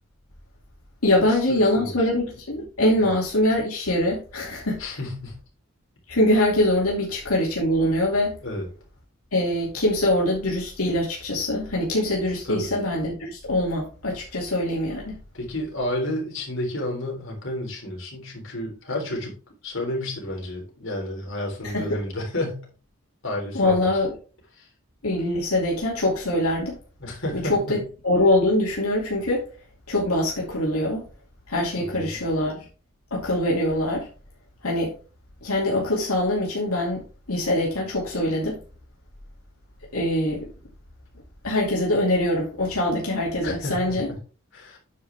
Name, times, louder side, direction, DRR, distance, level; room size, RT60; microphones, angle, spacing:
voice 1, 1.0-4.8 6.1-8.3 9.3-15.2 21.6-21.9 23.5-24.1 25.0-26.7 27.3-29.4 29.9-31.0 31.5-32.7 33.1-34.1 34.6-34.9 35.4-38.6 39.9-40.5 41.4-44.1, left 1 dB, 85° left, 2.5 m, -23 dB
voice 2, 1.8-2.1 3.0-3.1 4.8-5.4 8.4-8.7 12.4-12.7 15.3-19.3 19.6-22.6 23.2-23.9 24.6-24.7 27.0-27.8 31.8-32.2 43.4-44.2 44.5-44.8, left 1 dB, 60° left, 3.8 m, -31 dB
9.1 x 6.1 x 3.5 m
head